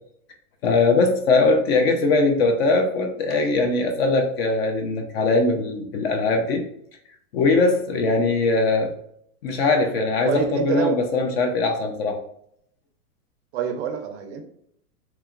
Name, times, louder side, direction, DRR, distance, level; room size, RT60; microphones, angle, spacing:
voice 1, 0.6-6.6 7.3-8.9 9.4-12.2, left 3 dB, 45° left, 4 dB, 0.4 m, -21 dB
voice 2, 10.2-11.0 13.5-14.4, right 7 dB, 50° right, 6 dB, 0.4 m, -26 dB
2.9 x 2.3 x 2.3 m, 0.70 s
hypercardioid pair, 140°, 46 cm